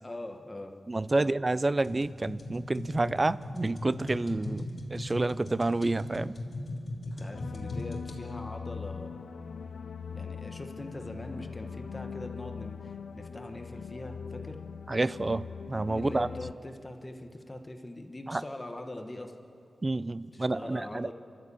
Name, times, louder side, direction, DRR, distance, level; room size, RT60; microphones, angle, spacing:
voice 1, 0.0-0.7 1.1-1.3 7.0-9.2 10.1-14.6 15.9-19.3 20.3-21.1, left 1 dB, 20° left, 5 dB, 1.2 m, -42 dB
voice 2, 0.9-6.3 14.9-16.3 18.3-18.4 19.8-21.1, right 2 dB, 25° right, 16 dB, 0.4 m, -29 dB
sound 1, 1.8-8.2, left 1 dB, 35° left, 2.5 m, -39 dB
sound 2, 7.3-16.5, left 6 dB, 75° left, 0.6 m, -41 dB
29.0 x 12.5 x 8.5 m, 2.6 s
wide cardioid pair, 170°, 0 cm